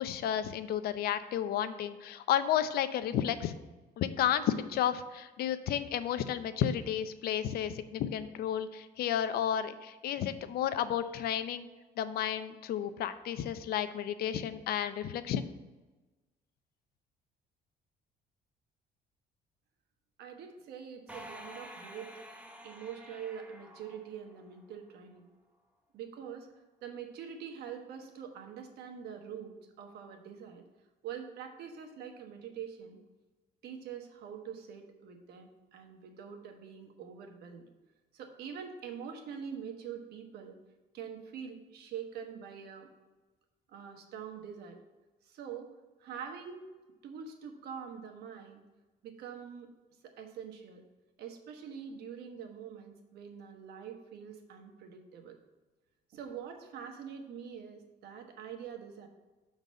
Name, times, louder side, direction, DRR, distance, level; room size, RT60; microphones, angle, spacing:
voice 1, 0.0-3.5 4.0-11.7 12.0-15.5, left 10 dB, 65° left, 12 dB, 0.5 m, -32 dB
voice 2, 20.2-22.2 22.6-25.3 25.9-26.5 26.8-30.6 31.0-33.0 33.6-37.7 38.1-40.6 40.9-42.9 43.7-44.8 45.2-45.7 46.0-46.7 47.0-48.6 49.0-49.7 50.0-50.8 51.2-55.4 56.1-59.1, right 7 dB, 70° right, 4 dB, 1.1 m, -44 dB
sound 1, 21.1-24.8, equal, 10° right, 0.9 m, -50 dB
6.7 x 4.0 x 6.2 m, 1.2 s
cardioid pair, 110°, 17 cm